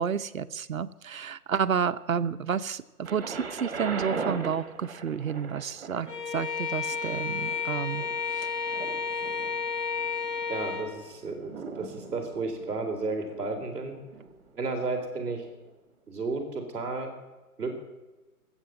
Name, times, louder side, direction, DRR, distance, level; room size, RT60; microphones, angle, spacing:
voice 1, 0.0-8.1 8.3-8.8, right 7 dB, 55° right, 10 dB, 0.8 m, -31 dB
Thunder, 3.0-14.9 15.7-15.8, right 4 dB, 40° right, 1.9 m, -41 dB
Bowed string instrument, 6.1-10.9, left 5 dB, 85° left, 5.1 m, -32 dB
voice 2, 10.5-13.9 14.5-15.4 16.1-17.1 17.6-17.8, right 3 dB, 5° right, -11 dB, 2.7 m, -33 dB
20.0 x 8.1 x 7.5 m, 1.1 s
hypercardioid pair, 170°, 47 cm